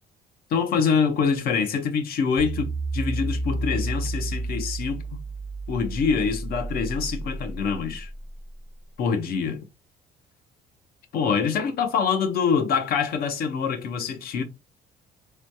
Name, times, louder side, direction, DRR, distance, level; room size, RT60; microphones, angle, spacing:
voice 1, 0.5-5.0 5.7-8.1 9.0-9.6 11.1-14.4, left 6 dB, 65° left, 0.7 m, -25 dB
sound 1, 2.4-8.6, right 2 dB, 5° left, 0.6 m, -31 dB
3.1 x 2.2 x 2.7 m
cardioid pair, 110°, 17 cm